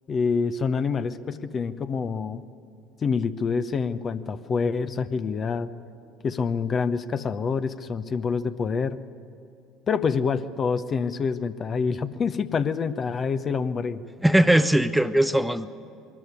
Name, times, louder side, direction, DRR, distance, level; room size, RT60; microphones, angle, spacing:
voice 1, 0.1-2.4 3.0-5.7 6.2-9.0 9.9-14.0, left 5 dB, 35° left, 12 dB, 0.7 m, -26 dB
voice 2, 14.2-15.7, right 1 dB, 5° right, 13 dB, 0.7 m, -20 dB
22.0 x 13.5 x 9.7 m, 2.6 s
figure-of-eight pair, 65°, 0 cm